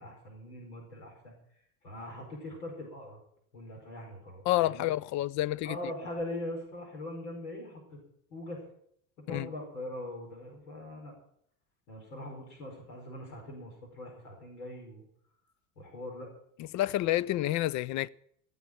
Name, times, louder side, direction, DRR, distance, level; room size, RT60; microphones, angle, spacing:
voice 1, 0.0-1.3 1.8-3.2 3.5-4.9 5.6-8.0 8.3-8.6 9.3-11.1 11.9-15.0 15.8-16.3, left 1 dB, 85° left, 5.0 m, -41 dB
voice 2, 4.5-5.8 9.3-9.5 16.7-18.1, left 15 dB, 40° left, 0.5 m, -29 dB
16.0 x 7.2 x 9.0 m
hypercardioid pair, 85°, 43 cm